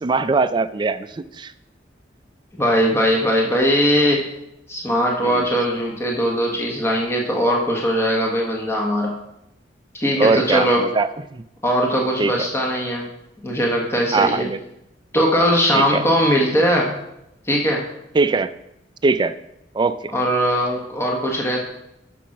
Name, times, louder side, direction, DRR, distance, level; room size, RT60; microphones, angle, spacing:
voice 1, 0.0-1.5 5.2-5.5 10.2-11.4 12.2-12.5 14.1-14.6 15.7-16.0 18.1-18.5 19.0-19.3 19.7-20.1, right 3 dB, 25° right, 12 dB, 0.4 m, -21 dB
voice 2, 2.5-4.3 4.7-9.2 9.9-10.8 11.6-13.0 13.4-14.5 15.1-16.9 17.5-17.9 20.1-21.6, equal, 15° left, -1 dB, 1.3 m, -20 dB
7.0 x 6.2 x 5.9 m, 0.83 s
head